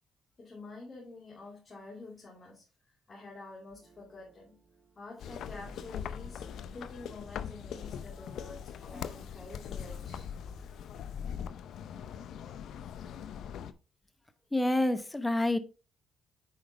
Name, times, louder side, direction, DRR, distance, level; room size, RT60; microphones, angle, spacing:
voice 1, 0.4-4.6 5.0-10.4 10.6-11.2 11.7-11.8, left 3 dB, 35° left, 2.5 m, -48 dB
sound 1, 3.7-10.7, left 2 dB, 35° right, 3.8 m, -56 dB
sound 2, 5.2-13.7, left 8 dB, 75° left, 0.6 m, -41 dB
voice 2, 14.5-15.6, left 1 dB, 15° left, 0.9 m, -27 dB
7.9 x 5.0 x 3.3 m
cardioid pair, 90°, 0 cm